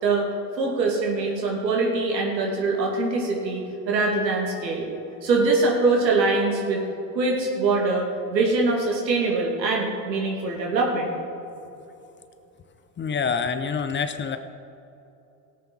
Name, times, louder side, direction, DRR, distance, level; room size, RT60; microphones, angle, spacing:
voice 1, 0.6-4.9 5.2-6.8 7.1-8.1 8.3-11.1, right 3 dB, 90° right, -1 dB, 2.7 m, -23 dB
voice 2, 13.0-14.4, left 6 dB, 25° left, 9 dB, 0.7 m, -26 dB
17.5 x 8.3 x 4.3 m, 2.8 s
hypercardioid pair, 85°, 49 cm